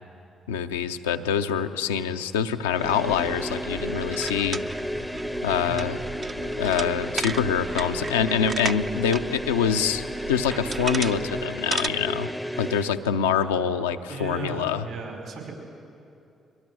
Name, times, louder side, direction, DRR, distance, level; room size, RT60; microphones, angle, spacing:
voice 1, 0.5-4.6 5.4-6.0 6.4-12.3 12.6-14.9, left 7 dB, 85° left, 7 dB, 0.5 m, -25 dB
sound 1, 2.7-13.0, equal, ahead, 0.7 m, -33 dB
sound 2, 2.8-11.5, right 4 dB, 85° right, 1.0 m, -42 dB
Bubblegum Machine Variations, 3.9-9.2 9.6-9.7 10.3-11.2 11.5-11.9, right 4 dB, 40° right, 0.6 m, -33 dB
voice 2, 14.1-15.5, right 4 dB, 65° right, 1 dB, 5.1 m, -35 dB
22.5 x 19.0 x 6.3 m, 2.7 s
hypercardioid pair, 45°, 0 cm